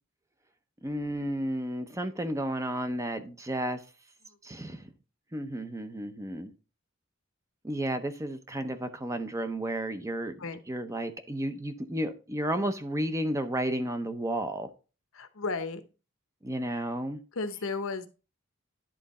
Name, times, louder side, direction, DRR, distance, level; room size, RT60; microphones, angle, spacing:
voice 1, 0.8-3.8 4.4-4.8 5.3-6.5 7.6-10.3 10.7-14.7 16.4-17.2, right 1 dB, 15° right, 0.6 m, -32 dB
voice 2, 15.1-15.8 17.3-18.1, left 3 dB, 75° left, 0.8 m, -34 dB
10.5 x 3.8 x 4.1 m
head